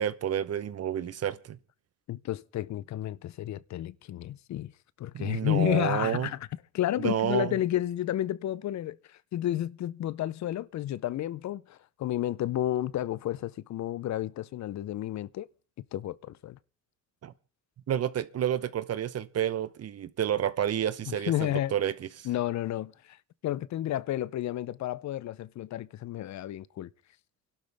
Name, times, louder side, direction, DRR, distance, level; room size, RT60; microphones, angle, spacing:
voice 1, 0.0-1.6 5.1-6.3 7.0-7.5 17.2-17.3 17.9-22.3, right 10 dB, 55° right, 1.0 m, -30 dB
voice 2, 2.1-4.7 5.0-6.5 6.7-15.5 15.9-16.6 21.1-21.7 22.2-23.2 23.4-26.9, left 13 dB, 65° left, 0.7 m, -31 dB
30.0 x 12.0 x 3.5 m
cardioid pair, 90°, 30 cm